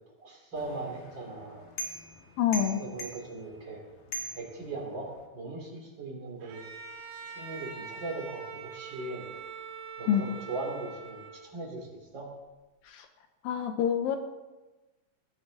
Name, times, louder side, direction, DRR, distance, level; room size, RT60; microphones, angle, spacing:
voice 1, 0.2-1.6 2.8-3.8 4.3-6.7 7.2-9.2 10.0-11.8 12.1-12.3, right 2 dB, 35° right, 0 dB, 3.0 m, -39 dB
sound 1, 0.6-5.3, equal, 55° left, 2.9 m, -42 dB
voice 2, 2.4-2.8 10.1-10.3 12.8-13.1 13.4-14.2, left 9 dB, 80° left, 6 dB, 2.5 m, -27 dB
Bowed string instrument, 6.4-11.7, right 5 dB, 70° right, 3.2 m, -44 dB
18.5 x 12.0 x 3.9 m, 1.1 s
omnidirectional pair, 4.2 m